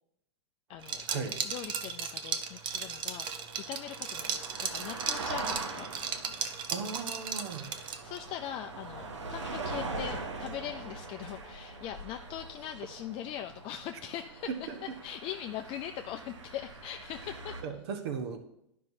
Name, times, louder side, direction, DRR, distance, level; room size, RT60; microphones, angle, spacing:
voice 1, 0.7-3.3 3.6-5.9 7.7-14.7 15.0-17.6, left 11 dB, 35° left, 6 dB, 0.4 m, -41 dB
sound 1, 0.7-17.6, right 3 dB, 85° right, 1.2 m, -42 dB
Liquid, 0.8-8.2, right 7 dB, 35° right, 0.7 m, -36 dB
voice 2, 6.7-7.7 17.6-18.4, right 5 dB, 60° right, 6 dB, 1.1 m, -36 dB
12.0 x 5.4 x 2.7 m, 0.78 s
hypercardioid pair, 100°, 15 cm